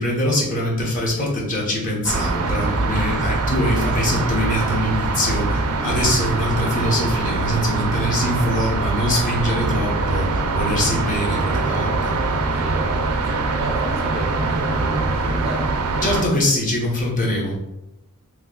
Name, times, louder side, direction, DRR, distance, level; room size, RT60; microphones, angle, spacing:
voice 1, 0.0-12.2 16.0-17.6, left 1 dB, 35° left, -3 dB, 0.9 m, -23 dB
sound 1, 2.0-16.2, right 3 dB, 80° right, 0.4 m, -23 dB
voice 2, 13.2-15.7, right 1 dB, 25° right, -1 dB, 0.5 m, -33 dB
3.0 x 2.3 x 3.6 m, 0.88 s
head